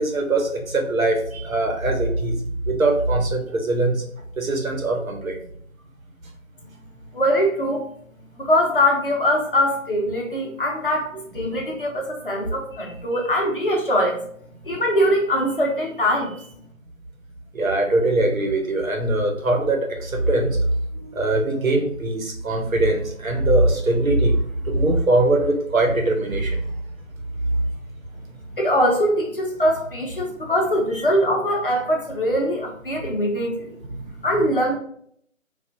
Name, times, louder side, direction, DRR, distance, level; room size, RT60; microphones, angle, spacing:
voice 1, 0.0-2.4 2.7-3.9 4.4-5.4 12.4-12.5 14.7-14.8 17.5-20.6 20.9-24.4 24.7-26.6, right 2 dB, 85° right, 3 dB, 1.0 m, -21 dB
voice 2, 7.1-7.9 8.3-14.2 14.6-16.5 28.6-33.8 34.2-34.8, equal, 45° left, -1 dB, 0.7 m, -22 dB
3.3 x 2.4 x 2.7 m, 0.64 s
figure-of-eight pair, 165°, 40 cm